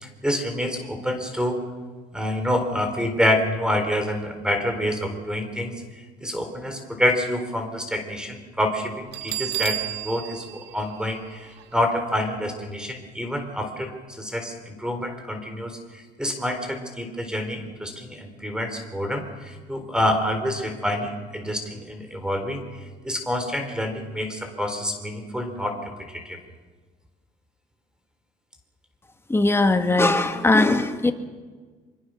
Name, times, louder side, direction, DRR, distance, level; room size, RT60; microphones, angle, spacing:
voice 1, 0.0-1.6 2.1-22.6 23.0-25.8 26.1-26.4, left 1 dB, 5° right, 6 dB, 3.8 m, -27 dB
Bell, 9.1-11.8, right 14 dB, 90° right, 1.2 m, -32 dB
voice 2, 29.3-31.1, left 2 dB, 15° left, 7 dB, 1.8 m, -19 dB
25.0 x 24.0 x 6.4 m, 1.4 s
cardioid pair, 110°, 17 cm